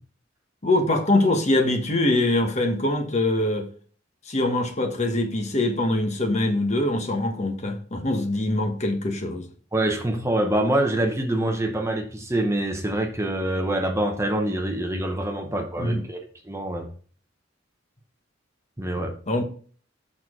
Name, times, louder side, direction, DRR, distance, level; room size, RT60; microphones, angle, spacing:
voice 1, 0.6-3.7 4.3-9.5 15.8-16.0 19.3-19.4, left 1 dB, 35° left, 1.2 m, -23 dB
voice 2, 9.7-16.9 18.8-19.1, right 1 dB, 15° right, 0.8 m, -25 dB
7.2 x 6.3 x 3.7 m
head